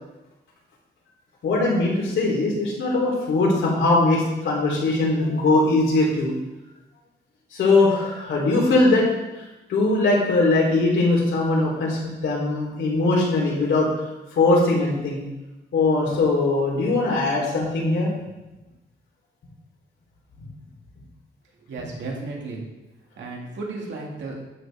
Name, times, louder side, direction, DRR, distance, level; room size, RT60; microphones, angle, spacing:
voice 1, 1.4-6.3 7.5-9.1 9.7-13.9 14.4-15.2 15.7-18.1, left 2 dB, 75° left, -3 dB, 3.4 m, -20 dB
voice 2, 21.7-22.7 23.2-24.4, right 3 dB, 70° right, -1 dB, 2.2 m, -33 dB
12.0 x 7.3 x 3.5 m, 1.0 s
wide cardioid pair, 175°, 20 cm